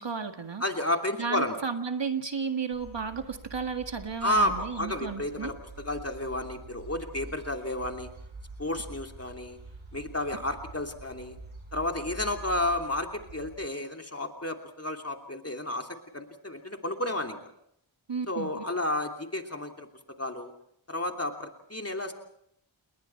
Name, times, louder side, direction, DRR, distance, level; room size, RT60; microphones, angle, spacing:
voice 1, 0.0-0.6 1.2-5.5 18.1-18.6, right 5 dB, 60° right, 6 dB, 1.9 m, -33 dB
voice 2, 0.6-1.6 4.2-8.1 8.6-9.6 9.9-11.4 11.7-15.9 16.1-17.4 18.3-20.5 20.9-22.1, left 1 dB, 30° left, 4 dB, 2.9 m, -31 dB
sound 1, 2.7-13.6, right 2 dB, 85° right, 5.8 m, -46 dB
29.5 x 21.0 x 4.6 m, 0.71 s
wide cardioid pair, 50°, 48 cm